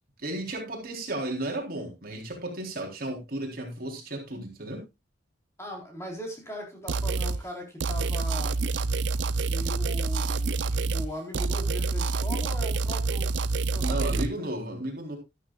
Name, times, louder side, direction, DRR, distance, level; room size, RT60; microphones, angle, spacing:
voice 1, 0.2-4.8 13.8-15.2, right 1 dB, 50° right, 1 dB, 3.8 m, -34 dB
voice 2, 5.6-8.6 9.5-13.3 13.7-14.5, equal, 15° left, 1 dB, 4.0 m, -39 dB
sound 1, 6.9-7.4 7.8-11.1 11.3-14.3, right 3 dB, 70° right, 0.6 m, -27 dB
13.0 x 12.5 x 2.4 m, 0.23 s
head